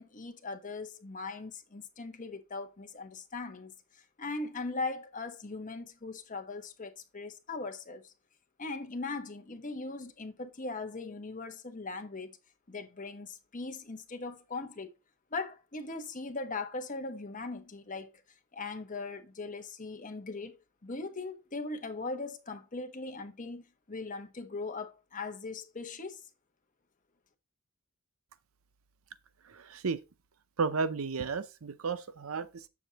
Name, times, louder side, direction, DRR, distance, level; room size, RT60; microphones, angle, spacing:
voice 1, 0.0-8.1 8.6-12.4 12.7-14.9 15.3-18.1 18.5-20.6 20.8-26.2, left 3 dB, 40° left, 1.1 m, -39 dB
voice 2, 29.5-30.0 30.6-32.7, right 4 dB, 80° right, 0.7 m, -33 dB
7.9 x 7.0 x 2.9 m
head